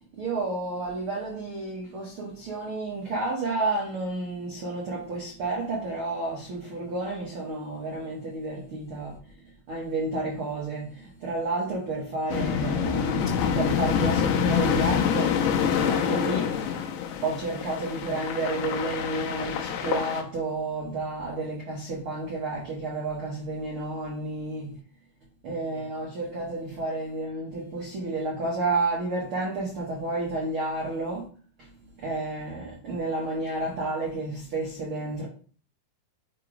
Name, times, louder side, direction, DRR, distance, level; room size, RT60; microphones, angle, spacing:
voice 1, 0.2-9.2 9.7-16.5 17.2-24.8 25.4-31.2 32.0-35.3, right 2 dB, 75° right, 1.2 m, -31 dB
sound 1, 12.3-20.2, left 7 dB, 85° left, 2.6 m, -26 dB
6.7 x 3.0 x 4.9 m
omnidirectional pair, 4.4 m